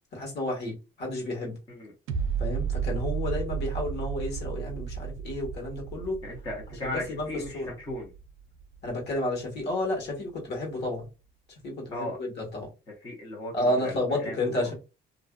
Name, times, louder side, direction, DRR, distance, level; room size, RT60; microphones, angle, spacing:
voice 1, 0.1-1.6 2.4-6.2 6.8-7.7 8.8-11.1 11.6-12.7 13.5-14.7, left 1 dB, 55° left, 1.3 m, -31 dB
sound 1, 2.1-9.1 9.6-9.7, right 7 dB, 80° right, 0.4 m, -33 dB
voice 2, 6.2-8.1 11.9-12.2 13.0-14.7, left 1 dB, 20° left, 0.7 m, -37 dB
2.5 x 2.3 x 2.2 m
cardioid pair, 150°, 21 cm